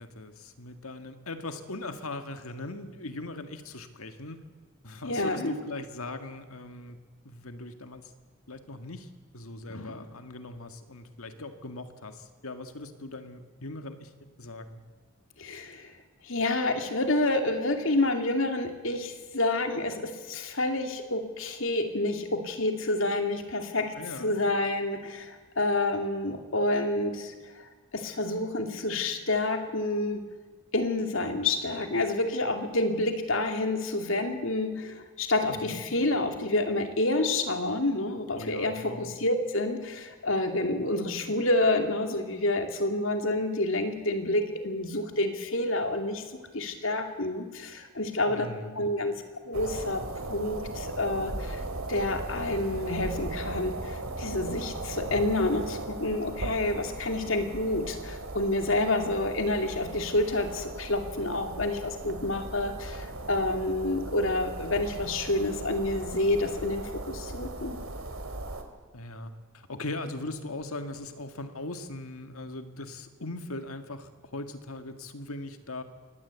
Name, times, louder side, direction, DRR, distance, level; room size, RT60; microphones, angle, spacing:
voice 1, 0.0-4.4 4.8-7.0 7.2-8.1 8.5-14.1 14.4-14.8 24.0-24.4 35.5-35.8 38.3-39.1 48.3-48.9 68.9-75.8, left 2 dB, 85° left, 8 dB, 2.0 m, -40 dB
voice 2, 5.0-5.6 15.4-15.9 16.2-23.9 24.2-27.6 27.9-30.2 30.7-46.2 46.5-48.5 48.8-49.2 49.5-50.0 50.3-51.6 51.9-67.8, left 2 dB, 70° left, 6 dB, 2.5 m, -28 dB
sound 1, 49.5-68.6, right 2 dB, 75° right, 2.5 m, -38 dB
23.0 x 18.5 x 8.3 m, 1.4 s
head